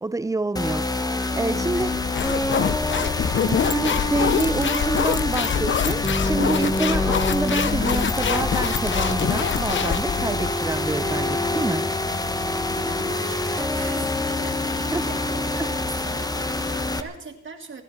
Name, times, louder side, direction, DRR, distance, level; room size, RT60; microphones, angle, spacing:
voice 1, 0.0-2.0 3.5-11.9 14.9-15.1, right 2 dB, 10° right, 0.6 m, -27 dB
sound 1, 0.6-17.0, left 2 dB, 10° left, 1.2 m, -26 dB
voice 2, 1.3-2.0 12.7-17.8, right 4 dB, 40° right, 2.5 m, -41 dB
sound 2, 1.4-13.9, left 2 dB, 65° left, 7.0 m, -44 dB
sound 3, 1.8-10.5, left 8 dB, 40° left, 0.7 m, -25 dB
27.0 x 11.0 x 4.4 m
cardioid pair, 90°, 30 cm